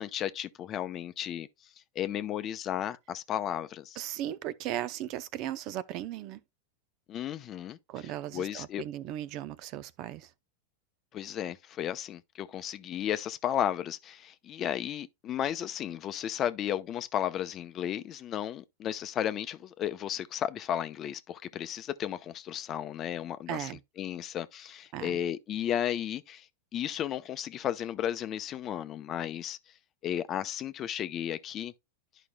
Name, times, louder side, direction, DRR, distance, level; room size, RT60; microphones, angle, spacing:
voice 1, 0.0-1.5 1.9-4.0 7.1-7.8 8.3-8.8 11.1-23.7 24.0-26.5 26.7-29.6 30.0-31.7, left 10 dB, 35° left, 0.7 m, -34 dB
voice 2, 4.0-6.4 7.9-10.3 23.5-23.8 24.9-25.2, right 12 dB, 50° right, 0.6 m, -37 dB
11.5 x 4.9 x 2.2 m
hypercardioid pair, 115°, 0 cm